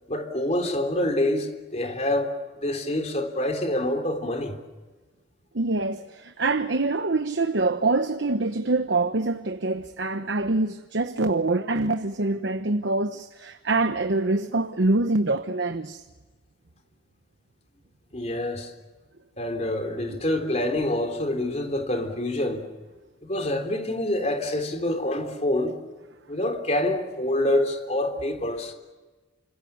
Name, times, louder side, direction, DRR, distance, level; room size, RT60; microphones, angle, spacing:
voice 1, 0.0-2.3 2.6-4.6 18.1-18.7 19.4-22.7 23.2-25.8 26.3-28.7, left 1 dB, 35° left, 3.5 m, -26 dB
voice 2, 5.5-16.0 20.1-20.2, right 2 dB, 70° right, 1.0 m, -25 dB
29.5 x 26.5 x 7.0 m
head